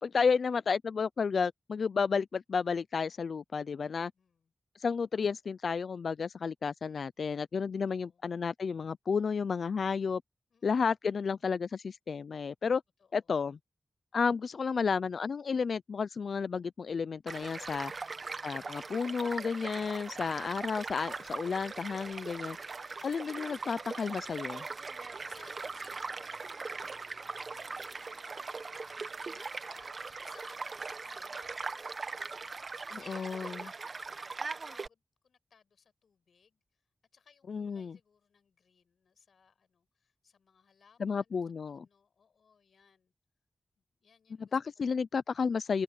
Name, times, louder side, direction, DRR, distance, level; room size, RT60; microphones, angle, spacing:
voice 1, 0.0-4.1 4.8-10.2 10.6-12.8 13.1-13.6 14.1-17.9 18.4-22.6 23.0-24.6 33.1-33.6 37.5-38.0 41.0-41.9 44.5-45.8, left 5 dB, 65° left, 0.4 m, -32 dB
voice 2, 3.9-4.5 7.9-8.3 10.5-10.9 13.0-13.3 17.9-18.3 25.0-26.9 27.5-28.5 29.1-32.0 32.4-36.6 37.1-41.4 41.6-43.1 43.8-44.6, left 6 dB, 90° left, 5.9 m, -62 dB
Child speech kid speaking / Stream / Car passing by, 17.3-34.9, right 4 dB, 45° right, 0.9 m, -40 dB
wide cardioid pair, 165°, 0 cm